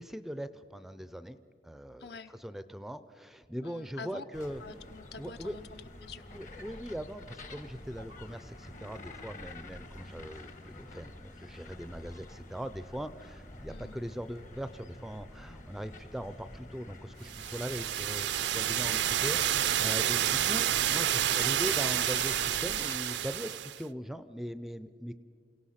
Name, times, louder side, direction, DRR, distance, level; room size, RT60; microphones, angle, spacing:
voice 1, 0.0-1.4 1.6-4.6 5.2-5.6 6.3-25.1, equal, ahead, 12 dB, 0.4 m, -40 dB
voice 2, 2.0-2.3 3.6-4.2 4.6-6.4 13.7-14.0 20.0-20.3 20.9-21.0 21.3-21.4, left 4 dB, 65° left, 9 dB, 0.9 m, -47 dB
sound 1, 4.3-23.0, left 2 dB, 45° left, 1.3 m, -48 dB
sound 2, 17.3-23.8, right 11 dB, 80° right, 0.5 m, -29 dB
28.5 x 17.0 x 5.7 m, 2.2 s
head